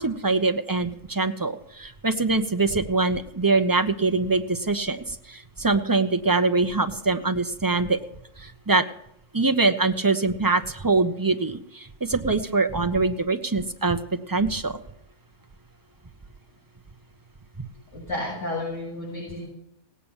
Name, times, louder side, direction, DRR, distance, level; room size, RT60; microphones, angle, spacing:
voice 1, 0.0-8.0 8.4-8.8 9.3-14.0 14.3-14.8, right 3 dB, 20° right, 7 dB, 0.8 m, -23 dB
voice 2, 17.9-19.5, left 2 dB, 65° left, -8 dB, 6.8 m, -32 dB
17.5 x 8.6 x 7.2 m, 0.79 s
omnidirectional pair, 1.3 m